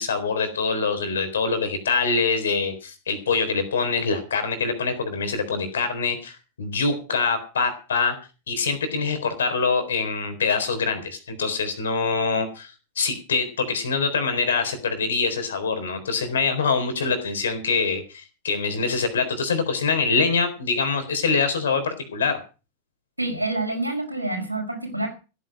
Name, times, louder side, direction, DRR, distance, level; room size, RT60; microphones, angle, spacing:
voice 1, 0.0-8.2 8.5-22.4, left 4 dB, 65° left, 9 dB, 4.0 m, -24 dB
voice 2, 23.2-25.1, right 2 dB, 90° right, 3 dB, 5.3 m, -27 dB
15.5 x 9.4 x 6.2 m, 0.33 s
figure-of-eight pair, 90°, 0 cm